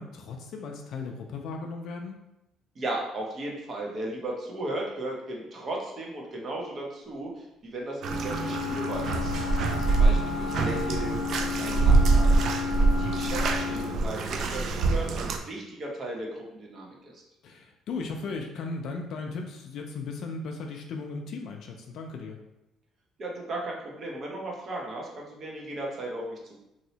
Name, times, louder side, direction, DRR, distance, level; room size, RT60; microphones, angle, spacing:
voice 1, 0.0-2.2 9.3-9.9 12.7-13.0 17.4-22.4, left 4 dB, 65° left, 2 dB, 0.4 m, -37 dB
voice 2, 2.7-9.3 9.9-12.4 13.0-17.2 23.2-26.6, right 1 dB, 40° right, -2 dB, 0.8 m, -36 dB
Wind instrument woodwind instrument, 8.0-14.0, left 6 dB, ahead, 0.8 m, -33 dB
Bathtub (filling or washing), 8.0-15.4, right 3 dB, 55° right, 0.3 m, -25 dB
3.1 x 2.7 x 2.7 m, 0.89 s
cardioid pair, 115°, 0 cm